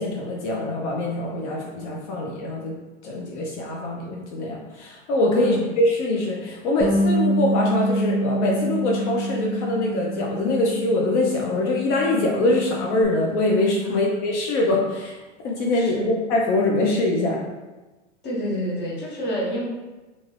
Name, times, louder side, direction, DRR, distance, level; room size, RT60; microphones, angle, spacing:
voice 1, 0.0-2.7 3.0-15.2 15.4-17.4, left 2 dB, 65° left, -2 dB, 0.6 m, -23 dB
voice 2, 5.3-5.7 13.8-14.0 15.7-16.1 18.2-19.6, equal, 30° left, -4 dB, 0.9 m, -29 dB
Bass guitar, 6.8-13.1, right 1 dB, 35° right, 0.6 m, -26 dB
2.6 x 2.4 x 3.1 m, 1.2 s
hypercardioid pair, 125°, 38 cm